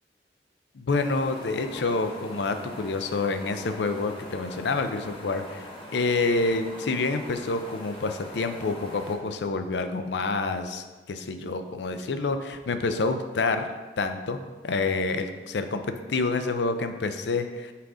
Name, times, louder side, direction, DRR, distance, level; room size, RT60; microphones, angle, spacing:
voice 1, 0.8-5.6 5.9-13.6 14.0-17.7, left 3 dB, 70° left, 8 dB, 0.5 m, -28 dB
sound 1, 0.9-9.1, left 1 dB, 30° left, 1.0 m, -43 dB
5.7 x 4.8 x 3.9 m, 1.3 s
head